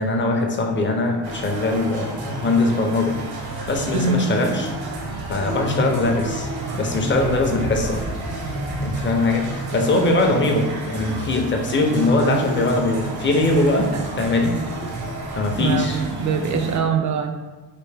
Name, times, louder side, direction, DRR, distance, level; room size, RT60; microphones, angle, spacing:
voice 1, 0.0-4.7 5.3-8.0 8.8-13.9 14.2-14.6 15.3-16.0, left 2 dB, 30° left, 2 dB, 0.5 m, -21 dB
sound 1, 1.2-16.8, right 2 dB, 70° right, 0.8 m, -30 dB
voice 2, 15.5-17.4, right 5 dB, 50° right, 6 dB, 0.4 m, -23 dB
3.3 x 2.5 x 3.3 m, 1.3 s
cardioid pair, 105°, 40 cm